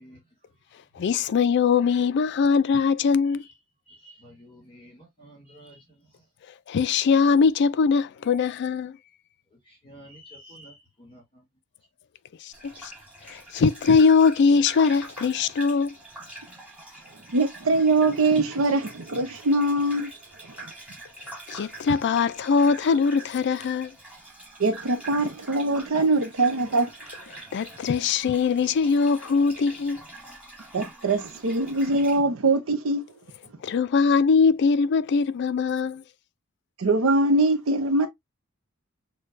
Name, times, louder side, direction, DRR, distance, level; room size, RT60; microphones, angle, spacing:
voice 1, 0.0-1.0 3.3-6.3 9.5-11.4, equal, 25° left, 2.4 m, -51 dB
voice 2, 1.0-3.4 6.7-8.9 12.4-12.9 13.3-15.9 21.5-23.9 27.5-30.0 33.6-36.0, left 5 dB, 55° left, 0.3 m, -21 dB
Gurgling / Bathtub (filling or washing), 12.5-32.2, right 2 dB, 5° right, 1.7 m, -44 dB
voice 3, 17.3-20.1 20.5-20.7 24.6-26.9 30.7-33.1 36.8-38.1, right 2 dB, 75° right, 0.6 m, -23 dB
6.5 x 2.2 x 2.5 m
head